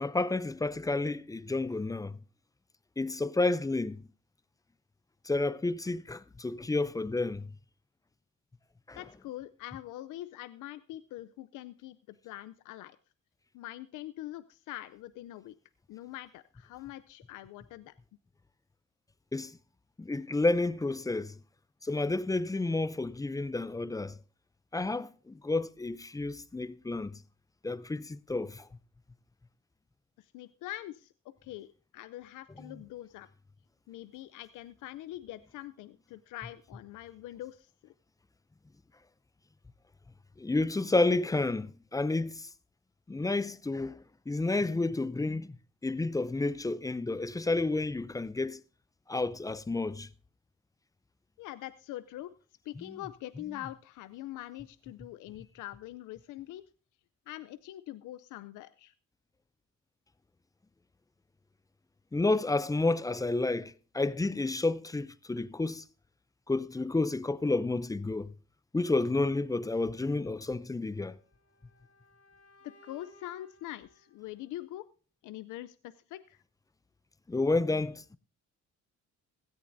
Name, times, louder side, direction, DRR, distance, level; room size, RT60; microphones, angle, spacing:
voice 1, 0.0-2.2 3.0-4.1 5.2-7.5 8.9-9.0 19.3-19.6 20.0-21.4 21.8-24.2 24.7-27.2 27.6-28.7 32.6-32.8 40.4-42.5 43.1-48.6 49.1-50.1 52.8-53.0 62.1-65.8 66.5-68.3 68.7-71.2 77.3-78.2, left 2 dB, 10° left, 0.5 m, -30 dB
voice 2, 8.9-13.0 13.5-15.5 15.9-17.9 30.2-33.3 33.9-37.9 51.4-52.3 52.6-56.6 57.3-58.9 72.6-74.9 75.2-76.4, left 15 dB, 85° left, 0.6 m, -44 dB
sound 1, 70.9-74.9, left 1 dB, 50° left, 1.9 m, -62 dB
17.0 x 13.5 x 2.6 m
cardioid pair, 90°, 30 cm